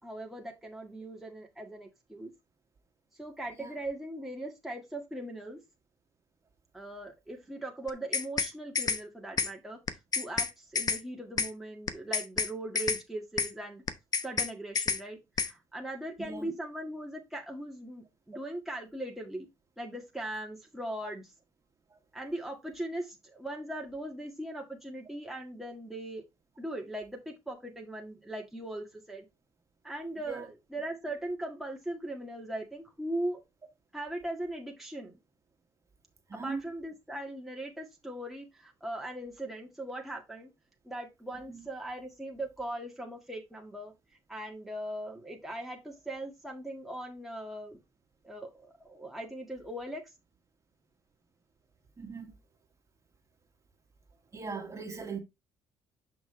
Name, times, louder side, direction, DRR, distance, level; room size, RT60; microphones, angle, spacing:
voice 1, 0.0-2.3 3.2-5.6 6.7-9.8 10.2-13.8 14.2-19.5 19.8-21.3 22.1-26.2 26.6-29.3 29.8-33.4 33.9-35.2 36.4-40.5 40.8-43.9 44.3-47.8 48.2-50.0, right 1 dB, ahead, 1.9 m, -39 dB
sound 1, 7.9-8.5 8.8-9.0 9.4-9.5 9.9-10.5 10.8-11.0 11.4-11.5 11.9-12.5 12.8-13.0 13.4-13.5 13.9-14.5 14.8-15.0 15.4-15.5, left 5 dB, 40° left, 0.9 m, -29 dB
voice 2, 16.2-16.5 30.3-30.5 36.3-36.6 41.5-41.6 52.0-52.3 54.3-55.2, right 4 dB, 30° right, 2.1 m, -39 dB
6.1 x 5.8 x 3.3 m
supercardioid pair, 75°, 10 cm